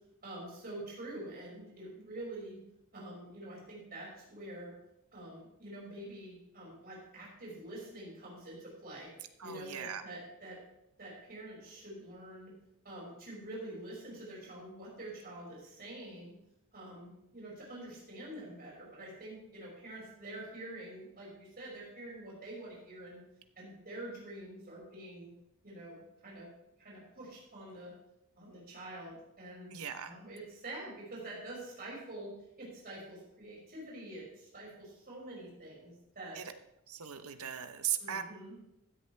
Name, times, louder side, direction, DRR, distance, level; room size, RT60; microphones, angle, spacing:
voice 1, 0.2-2.6 2.9-4.7 5.1-9.1 9.4-10.6 11.0-12.5 12.8-16.3 16.7-23.2 23.6-25.3 25.6-26.5 26.8-27.9 28.4-36.4 38.0-38.5, right 1 dB, 45° right, -5 dB, 5.6 m, -46 dB
voice 2, 9.4-10.0 29.7-30.2 36.3-36.4 36.9-38.2, right 10 dB, 70° right, 9 dB, 0.9 m, -38 dB
16.0 x 10.0 x 3.3 m, 0.83 s
head